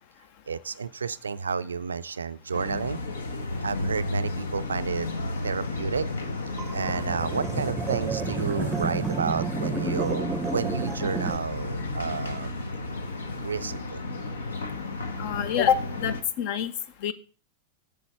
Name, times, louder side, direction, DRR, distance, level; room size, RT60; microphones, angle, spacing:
voice 1, 0.5-3.0 3.6-5.1 5.4-6.1 6.7-12.6 13.4-14.0, right 5 dB, 75° right, 15 dB, 0.4 m, -31 dB
sound 1, 2.5-16.2, left 2 dB, 70° left, 1.0 m, -33 dB
sound 2, 6.6-11.4, right 4 dB, 15° right, 0.6 m, -31 dB
voice 2, 15.2-16.7 17.0-17.1, left 8 dB, 45° left, 17 dB, 0.6 m, -26 dB
8.0 x 6.9 x 4.3 m, 0.38 s
figure-of-eight pair, 90°, 0 cm